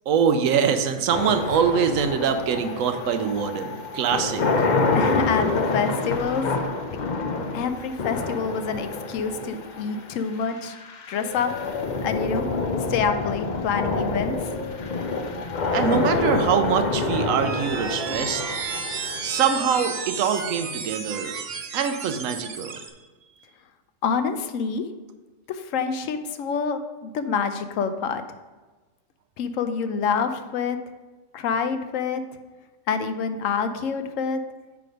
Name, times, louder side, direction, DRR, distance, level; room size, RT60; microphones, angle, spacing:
voice 1, 0.1-4.4 15.7-18.4 19.2-21.3 21.7-22.8, right 7 dB, 85° right, 8 dB, 1.0 m, -23 dB
sound 1, 1.1-20.1, left 3 dB, 50° left, 0.6 m, -27 dB
voice 2, 4.9-6.5 6.9-7.0 7.5-10.8 11.1-11.5 12.0-12.5 12.9-14.5 24.0-24.8 25.5-28.2 29.4-30.8 31.3-32.2 32.9-34.4, left 6 dB, 80° left, 9 dB, 1.0 m, -27 dB
sound 2, 17.0-22.9, right 5 dB, 60° right, 0.8 m, -32 dB
8.4 x 3.4 x 5.1 m, 1.2 s
omnidirectional pair, 1.4 m